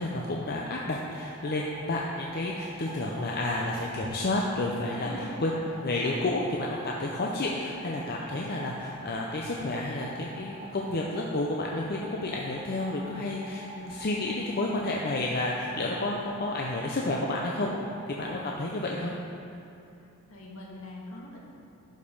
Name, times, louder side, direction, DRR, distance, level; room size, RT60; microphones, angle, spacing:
voice 1, 0.0-17.8 18.1-19.1, left 2 dB, 45° left, -2 dB, 0.7 m, -31 dB
sound 1, 1.2-18.4, right 1 dB, 25° right, 0.9 m, -45 dB
voice 2, 5.0-5.4 20.3-21.5, left 1 dB, 70° left, -4 dB, 1.9 m, -42 dB
11.5 x 5.2 x 5.4 m, 2.8 s
head